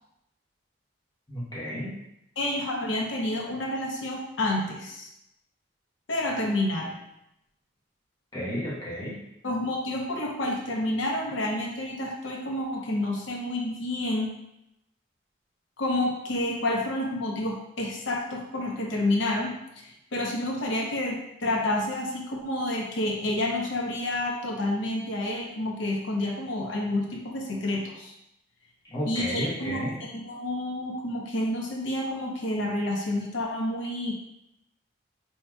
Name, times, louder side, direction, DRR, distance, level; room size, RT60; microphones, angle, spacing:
voice 1, 1.3-2.0 8.3-9.2 28.8-30.0, equal, 20° left, -8 dB, 1.1 m, -32 dB
voice 2, 2.4-5.1 6.1-6.9 9.4-14.3 15.8-19.5 19.8-28.1 29.1-34.1, left 1 dB, 75° left, -1 dB, 0.8 m, -29 dB
4.6 x 2.8 x 2.3 m, 0.83 s
head